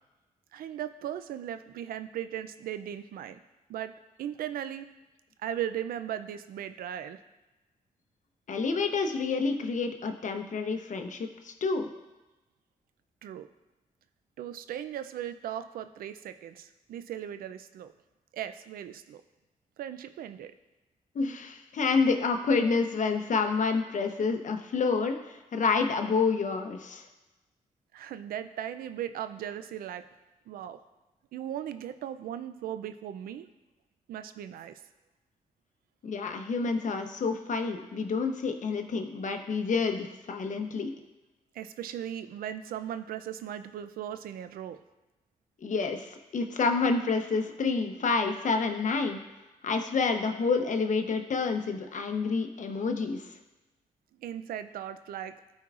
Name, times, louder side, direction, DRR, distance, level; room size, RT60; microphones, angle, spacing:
voice 1, 0.5-3.4 3.7-3.9 4.2-4.9 5.4-7.2 13.2-13.5 14.4-17.9 18.3-19.2 19.8-20.5 27.9-30.0 30.5-30.8 31.3-33.5 34.1-34.8 41.5-44.8 54.2-55.3, right 10 dB, 85° right, 11 dB, 0.4 m, -37 dB
voice 2, 8.5-11.9 21.1-27.1 36.0-40.9 45.6-49.2 49.6-53.3, left 4 dB, 60° left, 6 dB, 0.9 m, -28 dB
13.0 x 4.5 x 2.4 m, 1.1 s
cardioid pair, 60°, 15 cm